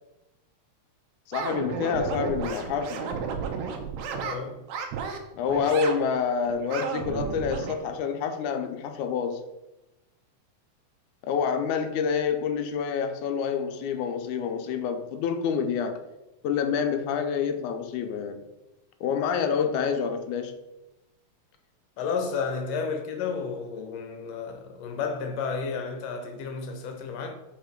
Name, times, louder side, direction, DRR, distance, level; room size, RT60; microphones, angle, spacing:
voice 1, 1.3-3.1 5.3-9.4 11.2-16.0 16.4-18.4 19.0-20.5, left 6 dB, 90° left, 2.2 m, -27 dB
sound 1, 1.3-4.4 4.7-5.2 5.5-6.0 6.4-7.8, right 6 dB, 75° right, 2.0 m, -32 dB
voice 2, 4.1-4.6 22.0-27.3, left 5 dB, 70° left, 1.9 m, -32 dB
5.6 x 5.0 x 5.1 m
omnidirectional pair, 3.4 m